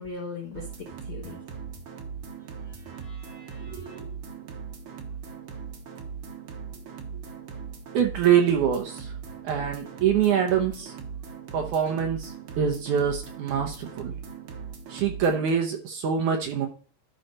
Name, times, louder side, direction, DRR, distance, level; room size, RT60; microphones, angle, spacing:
voice 1, 0.0-1.4 2.6-4.0, left 3 dB, 80° left, 1.1 m, -41 dB
sound 1, 0.5-15.5, right 6 dB, 90° right, 1.1 m, -39 dB
voice 2, 3.7-4.1 7.9-9.1 9.4-10.9 11.5-12.3 12.6-14.1 14.9-16.7, right 8 dB, 70° right, 2.0 m, -25 dB
12.0 x 4.9 x 4.1 m
omnidirectional pair, 4.5 m